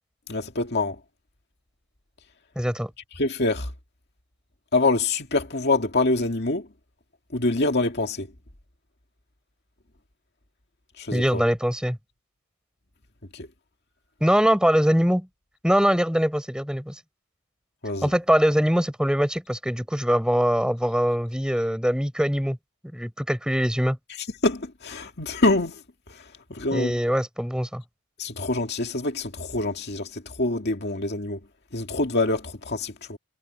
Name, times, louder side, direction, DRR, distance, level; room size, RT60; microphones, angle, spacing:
voice 1, 0.3-1.0 3.2-3.7 4.7-6.7 7.3-8.3 11.0-11.4 13.3-13.5 17.8-18.1 24.2-25.8 26.1-27.0 28.2-31.4 31.7-33.2, left 2 dB, 50° left, 2.2 m, -25 dB
voice 2, 2.6-2.9 11.1-12.0 14.2-15.3 15.6-17.0 18.0-22.6 22.9-24.0 26.7-27.8, equal, 5° right, 4.3 m, -22 dB
head